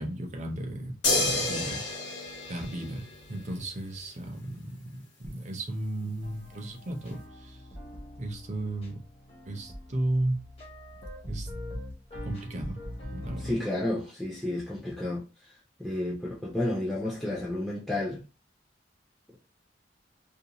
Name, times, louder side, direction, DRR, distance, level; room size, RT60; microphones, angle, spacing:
voice 1, 0.0-2.2 2.5-7.6 8.2-9.0 9.5-10.5 11.2-11.5 12.2-12.8 13.1-13.5, right 1 dB, 40° right, 0.6 m, -34 dB
sound 1, 1.0-3.5 5.2-5.3, left 3 dB, 80° left, 1.0 m, -29 dB
sound 2, 6.2-13.6, left 1 dB, 35° left, 0.8 m, -42 dB
voice 2, 13.4-15.2 15.8-18.2, left 1 dB, ahead, 0.5 m, -31 dB
2.5 x 2.2 x 2.9 m
head